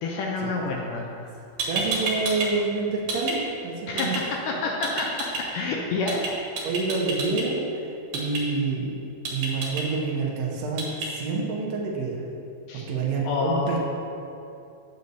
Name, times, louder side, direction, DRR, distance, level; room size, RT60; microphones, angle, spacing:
voice 1, 0.0-1.0 3.9-5.1 5.5-6.2 6.5-6.7 12.7-12.9 13.2-13.8, left 3 dB, 85° left, -1 dB, 1.9 m, -28 dB
sound 1, 1.3-1.4 1.6-2.5 2.8-3.4 4.0-4.2 4.8-5.4 6.1-6.3 6.6-7.4 8.1-8.4 9.3-9.8 10.8-11.1, right 3 dB, 65° right, 2.7 m, -29 dB
voice 2, 1.6-3.3 3.6-4.2 6.6-8.9 9.3-12.3 12.9-13.8, right 4 dB, 85° right, -3 dB, 1.5 m, -28 dB
8.1 x 8.1 x 2.7 m, 2.6 s
omnidirectional pair, 4.4 m